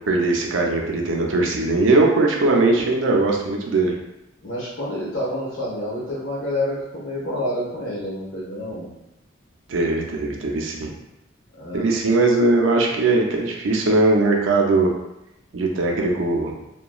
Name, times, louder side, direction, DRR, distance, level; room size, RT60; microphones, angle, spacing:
voice 1, 0.1-3.9 9.7-10.9 11.7-14.9 15.5-16.5, right 2 dB, 80° right, 1 dB, 0.5 m, -20 dB
voice 2, 4.4-8.9 11.6-11.9, left 1 dB, 75° left, -6 dB, 1.1 m, -28 dB
2.9 x 2.2 x 2.3 m, 0.90 s
head